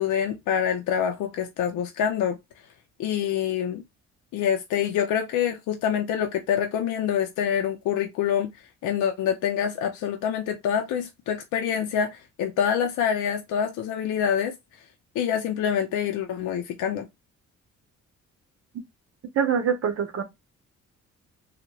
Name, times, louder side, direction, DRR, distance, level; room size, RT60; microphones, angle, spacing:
voice 1, 0.0-2.4 3.0-3.8 4.3-8.5 8.8-14.6 15.2-17.1, left 8 dB, 80° left, 0.5 m, -26 dB
voice 2, 19.4-20.2, right 7 dB, 50° right, 0.7 m, -24 dB
2.9 x 2.1 x 2.2 m
cardioid pair, 90°, 30 cm